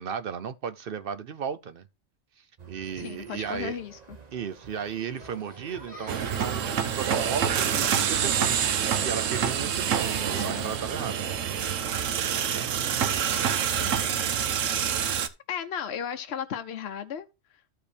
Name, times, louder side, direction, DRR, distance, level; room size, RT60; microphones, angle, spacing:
voice 1, 0.0-1.9 2.4-3.8 4.3-11.2 12.4-12.8, right 7 dB, 55° right, 0.7 m, -35 dB
sound 1, 2.6-14.1, right 7 dB, 35° right, 0.9 m, -47 dB
voice 2, 2.9-4.0 10.3-10.7 13.8-14.2 15.0-17.6, left 8 dB, 60° left, 0.9 m, -36 dB
sound 2, 5.2-14.8, equal, 15° left, 1.4 m, -48 dB
sound 3, 6.1-15.3, right 8 dB, 80° right, 1.2 m, -27 dB
14.0 x 4.8 x 3.3 m
omnidirectional pair, 1.3 m